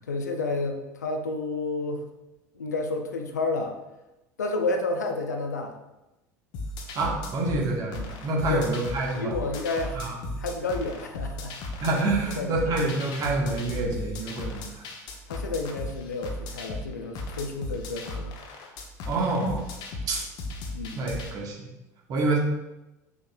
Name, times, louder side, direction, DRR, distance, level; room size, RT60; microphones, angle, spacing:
voice 1, 0.1-2.0 2.6-3.8 4.4-5.7 8.5-8.7 9.1-10.1 10.4-11.5 12.4-12.7 15.3-18.3 20.7-21.0, left 3 dB, 80° left, 5 dB, 0.6 m, -30 dB
sound 1, 6.5-21.3, left 2 dB, 50° left, 1.0 m, -36 dB
voice 2, 6.9-9.4 9.9-10.2 11.8-14.8 19.0-19.6 20.1-20.2 21.0-21.7 22.1-22.4, right 2 dB, 45° right, -1 dB, 1.6 m, -27 dB
6.3 x 5.9 x 2.6 m, 0.97 s
figure-of-eight pair, 70°, 9 cm